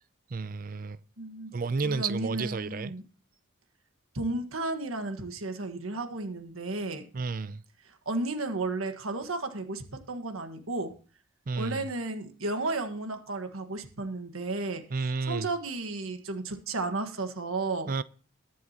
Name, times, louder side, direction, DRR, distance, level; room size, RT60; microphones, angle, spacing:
voice 1, 0.3-1.0 1.5-2.9 7.1-7.6 11.5-11.9 14.9-15.5 17.9-18.0, right 4 dB, 40° right, 0.4 m, -31 dB
voice 2, 1.2-1.5 1.8-3.0 4.1-7.0 7.8-10.9 11.5-14.8 15.2-17.9, right 2 dB, 85° right, 1.6 m, -33 dB
21.5 x 7.3 x 2.9 m
head